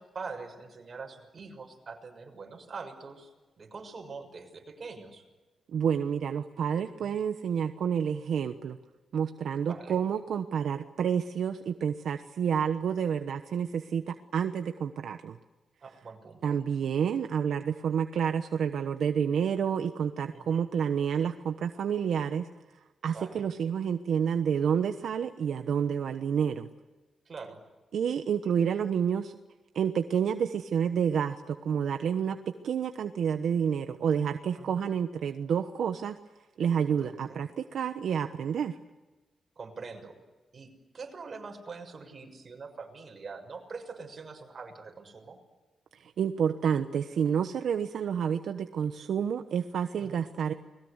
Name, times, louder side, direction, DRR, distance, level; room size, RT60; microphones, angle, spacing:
voice 1, 0.0-5.2 7.0-7.2 9.7-10.0 15.8-16.6 20.3-20.6 23.1-23.4 27.3-27.6 34.6-34.8 37.0-37.4 39.6-40.2 40.5-45.4 49.9-50.2, right 4 dB, 40° right, 4 dB, 6.4 m, -44 dB
voice 2, 5.7-8.8 9.1-15.4 16.4-22.5 23.0-26.7 27.9-29.3 29.7-32.4 32.6-36.2 36.6-38.8 45.9-50.5, right 7 dB, 75° right, 7 dB, 1.1 m, -29 dB
30.0 x 21.0 x 8.2 m, 1.2 s
wide cardioid pair, 130°, 0 cm